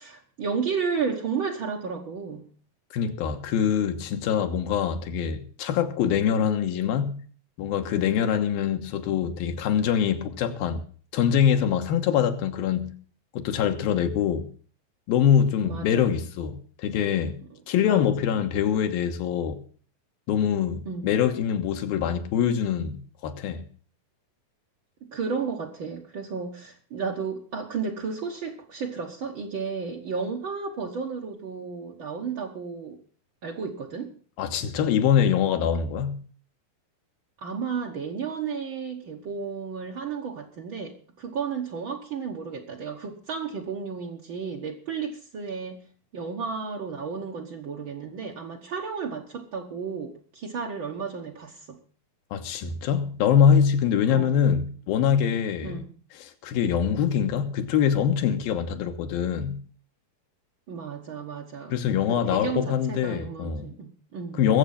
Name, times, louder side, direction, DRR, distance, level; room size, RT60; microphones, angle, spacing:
voice 1, 0.0-2.5 15.6-16.1 17.9-18.1 20.9-21.1 25.1-33.0 33.4-34.1 37.4-45.8 46.1-51.8 54.1-54.4 55.6-56.0 60.7-61.8 62.1-64.5, right 5 dB, 65° right, 1.2 m, -33 dB
voice 2, 2.9-7.2 7.6-10.8 11.1-13.0 13.3-14.5 15.1-17.4 17.7-19.6 20.3-23.6 34.4-36.2 52.3-55.8 56.2-59.6 61.7-63.7 64.4-64.6, left 8 dB, 85° left, 3.0 m, -24 dB
22.5 x 7.6 x 5.6 m
omnidirectional pair, 4.2 m